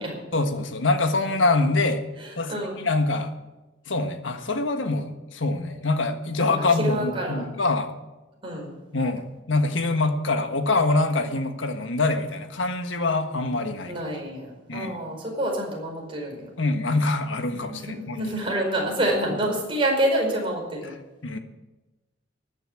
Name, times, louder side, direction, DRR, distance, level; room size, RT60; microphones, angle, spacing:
voice 1, 0.3-2.0 2.4-3.3 3.9-7.9 8.9-13.9 14.7-15.0 16.6-18.3 21.2-21.4, left 2 dB, 85° left, 7 dB, 1.5 m, -25 dB
voice 2, 2.2-2.8 6.4-7.4 8.4-8.7 13.9-16.5 17.5-20.9, right 1 dB, 30° right, -1 dB, 4.9 m, -27 dB
13.5 x 9.9 x 7.8 m, 1.1 s
head